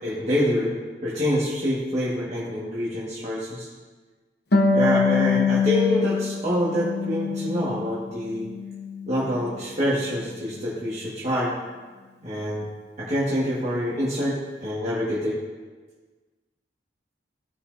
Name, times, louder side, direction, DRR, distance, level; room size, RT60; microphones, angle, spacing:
voice 1, 0.0-0.7 1.0-3.7 4.7-8.5 9.1-11.5 12.2-12.7 13.0-15.4, equal, 35° right, -8 dB, 1.5 m, -26 dB
Harp, 4.5-7.9 8.2-9.3, left 4 dB, 60° left, 0.8 m, -24 dB
15.5 x 5.6 x 2.6 m, 1.4 s
head